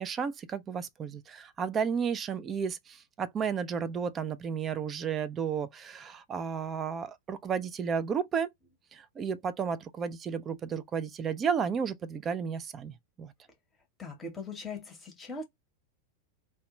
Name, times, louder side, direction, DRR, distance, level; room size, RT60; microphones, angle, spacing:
voice 1, 0.0-8.5 8.9-13.3, right 6 dB, 25° right, 0.4 m, -33 dB
voice 2, 14.0-15.4, left 3 dB, 15° left, 0.9 m, -40 dB
2.2 x 2.1 x 2.8 m
figure-of-eight pair, 90°, 0 cm